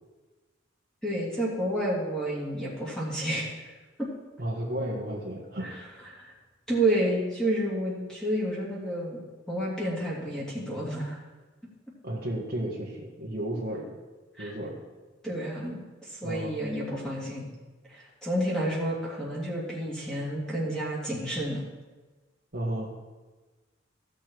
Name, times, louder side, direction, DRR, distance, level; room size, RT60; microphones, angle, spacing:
voice 1, 1.0-3.6 4.0-4.1 5.6-5.8 6.1-6.3 6.7-9.2 9.5-11.2 14.4-14.5 15.2-17.5 17.9-21.6, right 1 dB, 5° left, -6 dB, 2.8 m, -30 dB
voice 2, 4.4-5.8 12.0-13.9 14.4-14.8 16.2-16.6 22.5-22.9, right 1 dB, 55° right, -4 dB, 1.8 m, -33 dB
15.5 x 6.7 x 4.6 m, 1.2 s
head